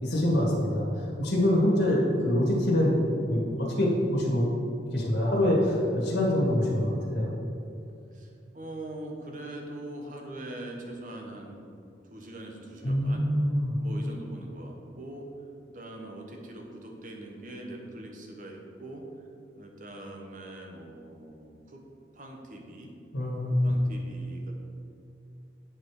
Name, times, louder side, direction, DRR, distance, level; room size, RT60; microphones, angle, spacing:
voice 1, 0.0-2.9 3.3-4.5 4.9-7.3 12.8-13.8 23.1-23.7, left 1 dB, 65° left, -4 dB, 1.6 m, -25 dB
voice 2, 8.1-11.7 12.1-13.2 13.8-15.3 15.7-19.0 19.5-21.8 22.1-22.9 23.6-24.5, right 1 dB, 45° right, 1 dB, 1.0 m, -42 dB
8.8 x 4.9 x 4.8 m, 2.6 s
head